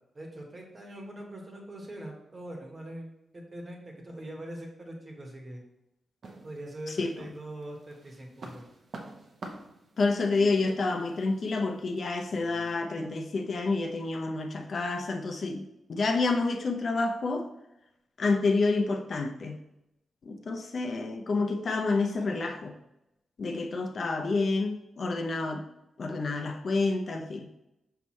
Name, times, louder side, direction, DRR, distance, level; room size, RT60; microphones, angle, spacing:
voice 1, 0.1-5.6 6.4-8.7, right 1 dB, 35° right, 1 dB, 1.4 m, -42 dB
sound 1, 6.2-7.2 7.6-12.8, right 2 dB, 55° right, 0.9 m, -47 dB
voice 2, 6.9-7.3 10.0-17.5 18.2-19.6 20.2-22.7 23.4-25.6 26.0-27.5, left 3 dB, 55° left, 4 dB, 0.7 m, -29 dB
5.8 x 5.4 x 3.1 m, 0.87 s
wide cardioid pair, 115°, 0 cm